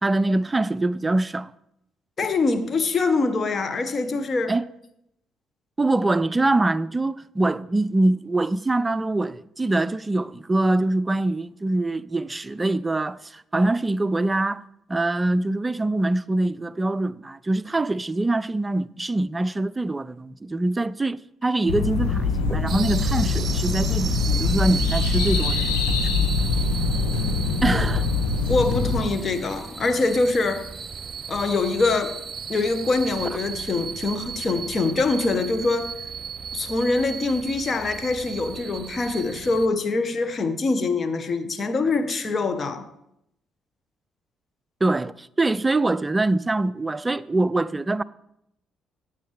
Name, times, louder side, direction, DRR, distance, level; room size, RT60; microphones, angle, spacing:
voice 1, 0.0-1.5 4.5-4.6 5.8-14.6 14.9-26.1 27.6-28.1 44.8-48.0, right 2 dB, 20° right, 0.5 m, -24 dB
voice 2, 2.2-4.5 27.6-27.9 28.4-30.7 31.3-32.2 32.5-35.9 36.5-42.9, left 3 dB, 40° left, 1.3 m, -24 dB
sound 1, 21.7-29.0, left 4 dB, 75° left, 1.2 m, -23 dB
sound 2, 22.7-39.7, right 6 dB, 40° right, 0.9 m, -35 dB
14.5 x 8.6 x 3.5 m
figure-of-eight pair, 45°, 0 cm